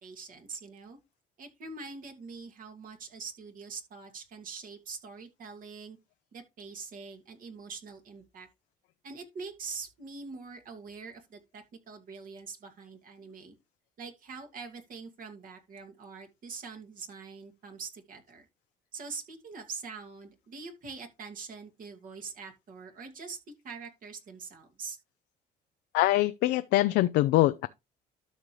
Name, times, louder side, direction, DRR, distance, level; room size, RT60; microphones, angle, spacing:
voice 1, 0.0-1.0 1.4-6.0 6.3-8.5 9.0-13.6 14.0-18.5 18.9-23.4 23.6-25.0, right 5 dB, 55° right, 2.5 m, -44 dB
voice 2, 25.9-27.7, left 16 dB, 80° left, 0.5 m, -23 dB
12.5 x 5.4 x 3.2 m
cardioid pair, 110°, 17 cm